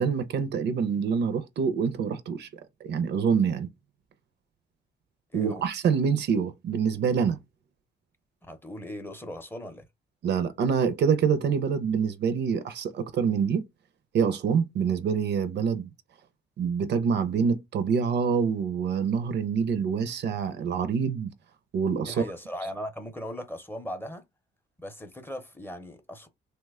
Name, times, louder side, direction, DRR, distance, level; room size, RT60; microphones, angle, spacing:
voice 1, 0.0-2.5 2.8-3.7 5.3-7.4 10.2-13.6 14.1-15.9 16.6-21.3 21.7-22.2, right 6 dB, 60° right, 0.5 m, -26 dB
voice 2, 5.3-5.7 8.5-9.8 22.0-24.2 24.8-26.3, equal, 10° left, 0.6 m, -38 dB
2.8 x 2.2 x 3.4 m
cardioid pair, 90°, 20 cm